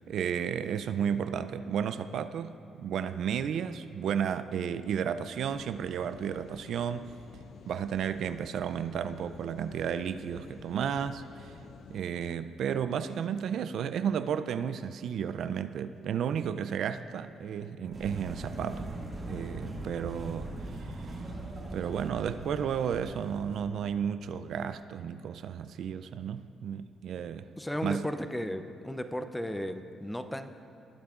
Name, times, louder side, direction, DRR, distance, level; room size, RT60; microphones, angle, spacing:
voice 1, 0.1-7.1 7.7-11.5 11.9-19.0 19.2-20.5 20.8-20.9 21.7-27.5 27.8-28.1, right 8 dB, 70° right, 11 dB, 0.3 m, -33 dB
sound 1, 5.4-12.0, left 6 dB, 70° left, 0.4 m, -51 dB
sound 2, 17.9-23.6, right 2 dB, 30° right, 2.0 m, -40 dB
voice 2, 27.6-30.5, equal, 5° left, 9 dB, 0.5 m, -35 dB
19.5 x 8.5 x 2.4 m, 2.9 s
cardioid pair, 90°, 0 cm